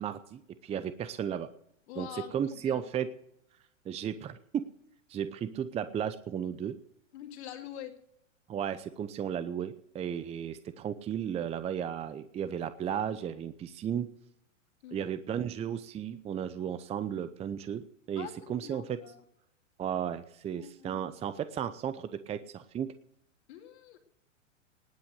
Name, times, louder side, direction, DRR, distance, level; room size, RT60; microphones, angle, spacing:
voice 1, 0.0-1.5 2.0-3.1 3.8-4.6 5.1-6.8 8.5-14.1 14.9-19.0 19.8-22.9, right 9 dB, 15° right, 13 dB, 0.7 m, -34 dB
voice 2, 1.9-2.8 7.1-8.0 14.8-15.1 18.2-19.2 20.5-21.1 23.5-24.0, left 11 dB, 55° left, 2 dB, 2.6 m, -45 dB
19.5 x 8.7 x 6.7 m, 0.76 s
hypercardioid pair, 110°, 38 cm